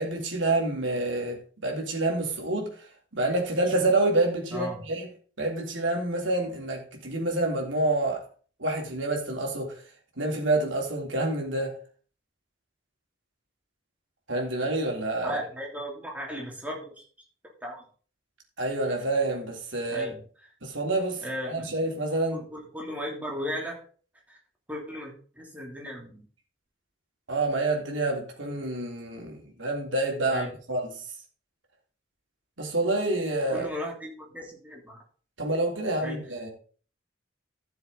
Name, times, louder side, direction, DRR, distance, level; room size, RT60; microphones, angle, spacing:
voice 1, 0.0-2.7 3.1-5.1 5.4-8.2 8.6-9.8 10.2-11.7 14.3-15.4 18.6-20.1 20.6-21.2 21.5-22.4 27.3-30.9 32.6-33.7 35.4-36.5, right 2 dB, 85° right, 3.5 m, -27 dB
voice 2, 4.5-4.8 15.2-17.0 17.6-17.8 19.9-20.2 21.2-21.9 22.3-23.8 24.3-24.4 24.7-26.3 30.3-30.5 33.5-35.0 36.0-36.2, equal, 10° right, 3.1 m, -36 dB
13.5 x 7.1 x 4.0 m
head